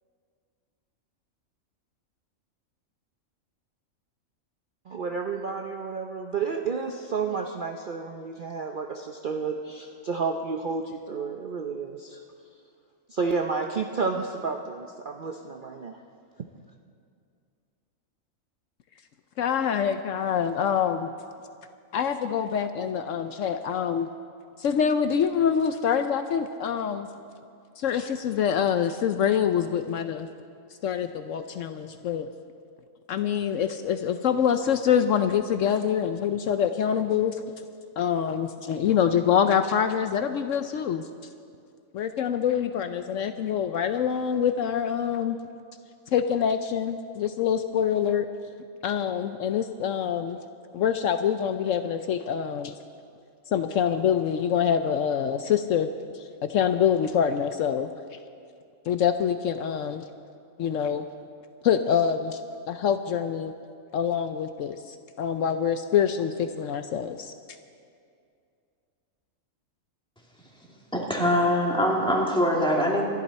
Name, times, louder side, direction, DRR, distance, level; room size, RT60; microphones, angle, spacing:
voice 1, 4.9-12.2 13.1-16.0, right 5 dB, 45° right, 3 dB, 0.7 m, -31 dB
voice 2, 19.4-21.1 21.9-24.1 24.6-27.1 27.8-30.3 30.8-32.3 33.1-37.4 38.0-41.1 41.9-45.4 46.1-48.3 48.8-50.4 50.7-52.7 53.5-55.9 56.4-57.9 58.9-60.0 60.6-61.0 61.6-62.4 62.7-63.5 63.9-67.3, left 8 dB, 70° left, 8 dB, 0.9 m, -25 dB
voice 3, 70.9-73.0, equal, 5° left, -3 dB, 2.5 m, -23 dB
26.0 x 11.5 x 4.2 m, 2.4 s
omnidirectional pair, 1.4 m